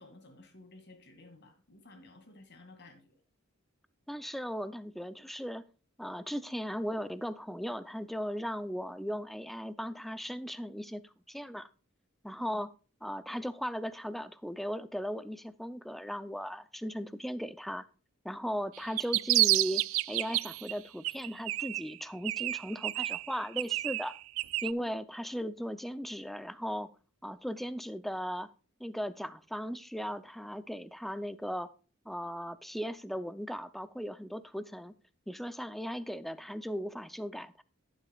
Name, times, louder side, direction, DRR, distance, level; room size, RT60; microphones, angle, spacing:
voice 1, 0.0-3.2 12.4-12.6, left 2 dB, 55° left, 7 dB, 2.2 m, -54 dB
voice 2, 4.1-5.6 6.0-11.0 11.3-11.7 12.2-12.7 13.0-17.9 18.2-24.2 24.6-26.9 27.2-28.5 28.8-31.7 32.1-34.9 35.3-37.6, equal, ahead, 14 dB, 0.4 m, -37 dB
sound 1, 18.8-20.7 21.0-22.0 22.2-24.7, right 18 dB, 75° right, 0.3 m, -30 dB
11.0 x 9.1 x 2.3 m, 0.35 s
head